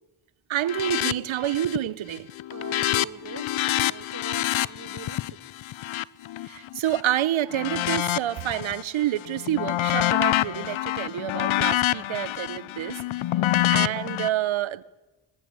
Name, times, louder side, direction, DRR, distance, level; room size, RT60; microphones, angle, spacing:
voice 1, 0.5-2.3 6.5-13.0 13.7-14.8, right 12 dB, 75° right, 1.1 m, -28 dB
sound 1, 0.7-1.1 1.4-1.9 2.2-7.0 7.5-8.8 9.2-14.3, left 14 dB, 75° left, 0.7 m, -26 dB
voice 2, 2.5-5.4 13.4-13.8, right 5 dB, 40° right, 1.6 m, -43 dB
21.0 x 21.0 x 9.8 m
wide cardioid pair, 125°, 47 cm